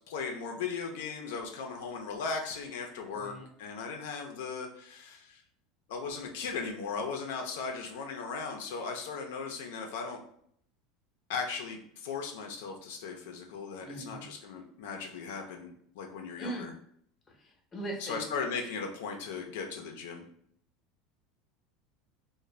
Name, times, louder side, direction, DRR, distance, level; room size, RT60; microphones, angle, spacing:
voice 1, 0.1-5.4 5.9-10.2 11.3-16.7 18.0-20.2, left 5 dB, 85° left, 2 dB, 0.4 m, -37 dB
voice 2, 3.1-3.5 13.8-14.3 16.4-16.7 17.4-18.3, right 1 dB, 25° left, 1 dB, 0.7 m, -40 dB
2.4 x 2.1 x 3.1 m, 0.66 s
supercardioid pair, 125°, 0 cm